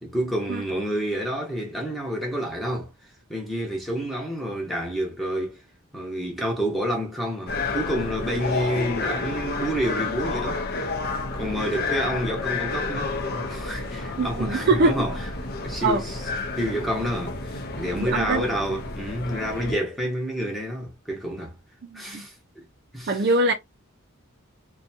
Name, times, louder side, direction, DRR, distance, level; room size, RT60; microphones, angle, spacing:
voice 1, 0.0-2.9 3.3-5.6 5.9-10.9 11.3-16.3 16.6-21.6 21.9-22.3 22.9-23.3, equal, ahead, 0.8 m, -29 dB
sound 1, 7.5-19.8, left 3 dB, 45° left, 0.5 m, -30 dB
voice 2, 14.2-14.9 15.8-16.0 17.9-18.4 21.9-22.3 23.1-23.5, right 2 dB, 45° right, 0.4 m, -22 dB
2.6 x 2.2 x 2.6 m
head